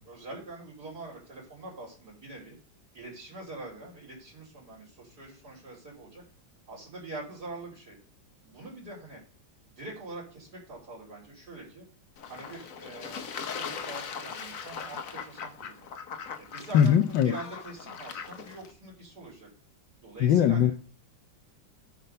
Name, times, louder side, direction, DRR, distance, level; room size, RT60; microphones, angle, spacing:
voice 1, 0.1-2.6 2.9-6.2 6.7-8.0 8.4-9.2 9.7-11.8 12.3-15.9 16.4-19.5 20.0-20.7, right 2 dB, 55° right, 3.8 m, -44 dB
Fowl / Bird / Water, 12.2-18.7, left 6 dB, 50° left, 1.1 m, -40 dB
voice 2, 16.7-17.4 20.2-20.7, left 9 dB, 75° left, 1.3 m, -21 dB
13.0 x 6.0 x 5.4 m
omnidirectional pair, 2.1 m